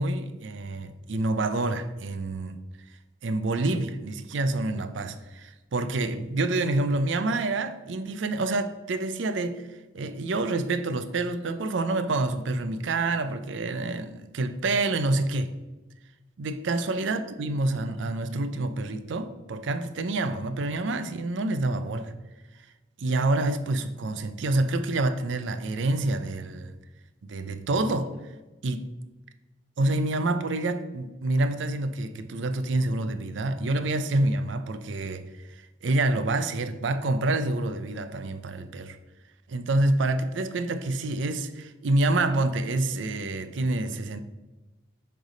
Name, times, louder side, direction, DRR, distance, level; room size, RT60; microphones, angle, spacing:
voice 1, 0.0-2.6 3.2-9.7 9.9-15.5 16.4-22.1 23.0-26.7 27.3-28.1 28.6-28.9 29.8-35.3 35.8-39.0 39.5-44.2, right 2 dB, 80° right, 0.5 m, -27 dB
6.4 x 3.4 x 5.1 m
head